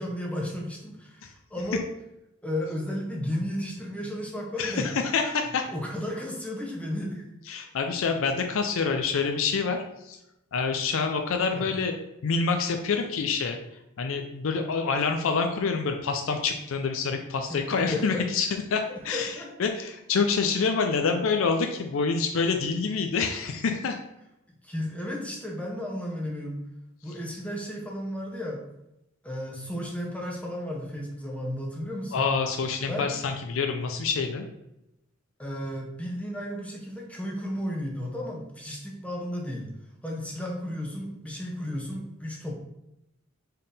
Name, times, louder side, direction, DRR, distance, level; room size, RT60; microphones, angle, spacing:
voice 1, 0.0-1.9 2.4-4.9 5.7-7.2 11.5-11.7 17.5-18.3 18.9-19.5 24.6-26.6 27.0-28.6 29.2-32.3 32.9-33.1 35.4-39.7 40.0-42.6, left 1 dB, 5° left, -1 dB, 0.6 m, -33 dB
voice 2, 4.6-5.7 7.5-10.2 10.5-11.9 12.2-13.6 14.0-24.0 32.1-34.5, left 5 dB, 85° left, 5 dB, 0.4 m, -27 dB
4.5 x 3.6 x 3.3 m, 0.87 s
head